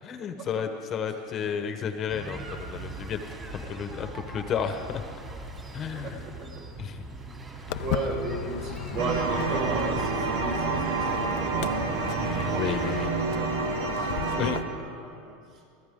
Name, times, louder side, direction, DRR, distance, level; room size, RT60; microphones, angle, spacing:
voice 1, 0.0-3.2 3.5-5.0 5.7-6.2 6.8-7.1 12.2-13.1 14.4-14.6, left 7 dB, 35° left, 7 dB, 1.0 m, -32 dB
sound 1, 2.1-13.1, right 2 dB, 20° right, 2.7 m, -41 dB
Walk footsteps, 7.7-14.6, left 13 dB, 60° left, 0.5 m, -35 dB
voice 2, 7.8-11.9 12.8-15.6, right 3 dB, 60° right, -2 dB, 5.1 m, -35 dB
sound 2, 9.0-14.6, right 5 dB, 80° right, 1.6 m, -29 dB
24.0 x 15.5 x 3.7 m, 2.4 s
supercardioid pair, 130°, 0 cm